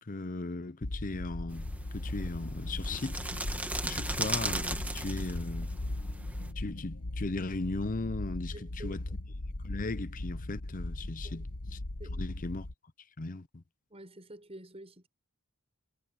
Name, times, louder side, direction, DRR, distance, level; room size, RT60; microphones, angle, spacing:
voice 1, 0.0-3.2 3.8-5.7 6.6-9.0 9.6-11.8 12.1-12.7 13.2-13.6, left 2 dB, 40° left, 0.7 m, -37 dB
sound 1, 0.8-12.7, left 1 dB, 90° left, 1.3 m, -38 dB
sound 2, 1.5-6.5, right 2 dB, 5° right, 1.5 m, -37 dB
voice 2, 8.5-9.0 11.2-11.4 12.0-12.2 13.9-15.1, right 1 dB, 25° right, 6.5 m, -48 dB
head